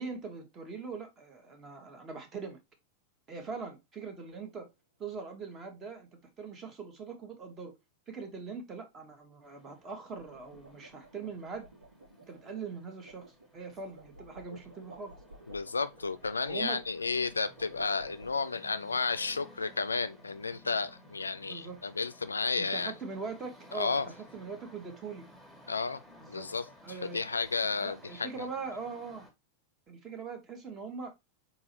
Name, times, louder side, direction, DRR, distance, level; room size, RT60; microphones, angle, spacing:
voice 1, 0.0-2.6 3.3-4.7 5.0-7.8 8.1-11.7 12.3-15.1 16.5-16.8 21.5-21.8 22.6-25.3 26.2-26.5 26.8-27.2 27.8-29.3 29.9-31.1, right 4 dB, 25° right, 1.2 m, -41 dB
sound 1, 4.4-4.7 9.9-18.8, right 2 dB, 80° right, 0.8 m, -55 dB
sound 2, 9.4-29.3, left 1 dB, 5° right, 1.6 m, -57 dB
voice 2, 15.5-22.9 23.7-24.1 25.7-26.0 26.3-26.6 27.0-28.5, left 4 dB, 75° left, 0.3 m, -32 dB
4.1 x 3.8 x 2.8 m
figure-of-eight pair, 90°, 0 cm